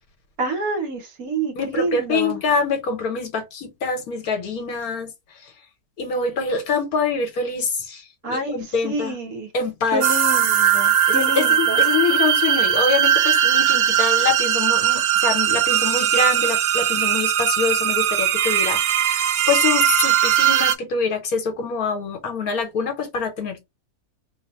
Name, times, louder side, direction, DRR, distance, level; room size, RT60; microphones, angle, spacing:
voice 1, 0.4-2.4 8.2-9.5 9.9-11.8, right 2 dB, 65° right, 1.5 m, -27 dB
voice 2, 1.6-5.1 5.4-5.5 6.0-9.2 9.5-10.0 11.1-23.6, left 5 dB, 65° left, 1.4 m, -25 dB
sound 1, 10.0-20.7, right 10 dB, 85° right, 0.5 m, -19 dB
3.3 x 2.2 x 4.2 m
omnidirectional pair, 1.7 m